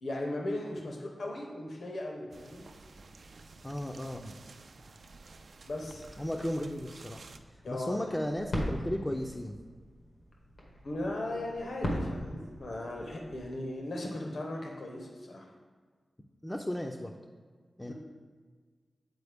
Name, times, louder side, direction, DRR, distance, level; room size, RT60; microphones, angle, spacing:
voice 1, 0.0-2.6 5.7-6.1 7.6-8.0 10.8-15.5 17.9-18.0, left 1 dB, 75° left, 0 dB, 0.9 m, -37 dB
sound 1, 2.3-7.4, right 3 dB, 60° right, 0.3 m, -52 dB
voice 2, 3.6-4.2 6.2-7.3 7.7-9.5 16.4-17.1 17.8-17.9, left 1 dB, 15° left, 1 dB, 0.4 m, -35 dB
sound 2, 5.8-13.5, equal, 90° left, 1.3 m, -40 dB
8.1 x 4.3 x 3.5 m, 1.5 s
wide cardioid pair, 95°, 0 cm